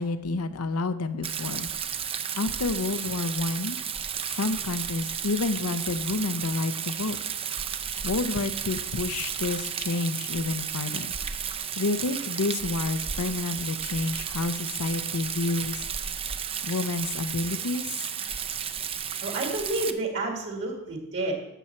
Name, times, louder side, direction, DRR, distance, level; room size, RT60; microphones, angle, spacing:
voice 1, 0.0-1.7 2.4-3.8 4.4-7.2 8.0-11.1 11.8-15.8 16.6-17.8, left 3 dB, 90° left, 12 dB, 0.7 m, -29 dB
Rain, 1.2-19.9, right 8 dB, 25° right, 0.4 m, -33 dB
voice 2, 19.2-21.3, right 2 dB, 55° right, 1 dB, 1.8 m, -30 dB
12.5 x 7.4 x 4.4 m, 0.92 s
head